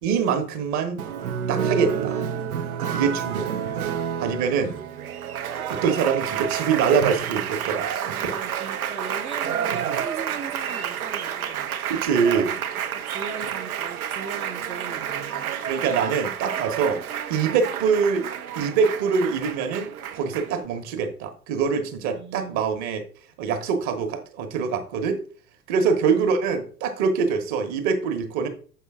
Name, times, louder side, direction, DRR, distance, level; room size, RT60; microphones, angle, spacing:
voice 1, 0.0-1.0 1.5-2.1 2.9-3.5 4.2-4.8 5.7-8.3 11.9-12.5 15.7-17.0 17.3-18.3 18.5-23.0 23.4-25.2 25.7-28.5, right 6 dB, 35° right, 7 dB, 1.3 m, -24 dB
Applause, 1.0-20.7, right 8 dB, 65° right, 0.9 m, -29 dB
voice 2, 2.9-3.5 4.6-5.1 8.0-11.7 12.4-15.5 22.1-22.6 26.0-26.3, right 5 dB, 15° right, 0 dB, 0.7 m, -39 dB
7.0 x 5.5 x 3.6 m, 0.42 s
figure-of-eight pair, 90°, 46 cm